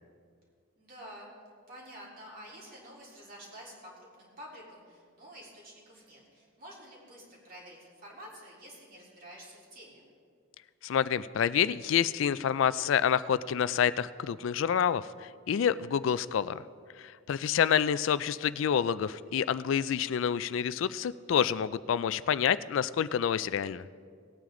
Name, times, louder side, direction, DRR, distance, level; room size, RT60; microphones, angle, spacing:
voice 1, 0.8-1.3 1.7-10.0 17.5-17.7, equal, 45° right, -5 dB, 3.6 m, -49 dB
voice 2, 10.8-16.6 17.0-23.8, left 8 dB, 70° left, 16 dB, 0.3 m, -28 dB
18.5 x 9.3 x 3.8 m, 2.1 s
head